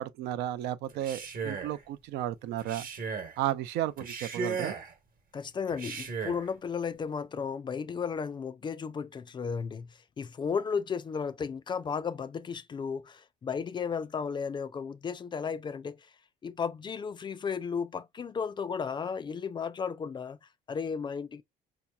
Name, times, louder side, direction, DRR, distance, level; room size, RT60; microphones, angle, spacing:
voice 1, 0.0-2.9 3.4-4.7, right 12 dB, 85° right, 0.4 m, -33 dB
Male speech man speaking, 0.9-1.8 2.6-3.4 4.0-4.9 5.7-6.5, right 5 dB, 55° right, 1.1 m, -36 dB
voice 2, 5.3-16.1 16.4-21.4, left 6 dB, 25° left, 0.4 m, -34 dB
4.6 x 2.8 x 2.2 m
cardioid pair, 110°, 17 cm